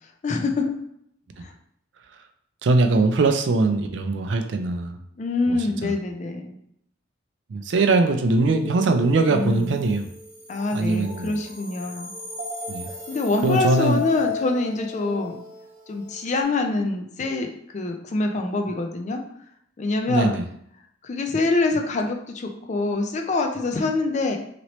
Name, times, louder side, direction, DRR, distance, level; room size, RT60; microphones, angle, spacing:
voice 1, 0.2-0.7 1.4-1.5 5.2-6.6 9.3-9.9 10.5-12.1 13.1-15.4 15.9-19.2 19.8-20.4 21.0-24.4, left 3 dB, 40° left, 4 dB, 0.4 m, -25 dB
voice 2, 2.6-5.0 5.5-5.6 5.8-5.9 7.5-10.0 10.7-11.4 12.7-12.9 13.4-14.0 20.1-20.4, right 3 dB, 70° right, 7 dB, 0.4 m, -21 dB
sound 1, 8.5-16.4, left 5 dB, 45° right, 0.8 m, -35 dB
2.9 x 2.8 x 2.9 m, 0.70 s
head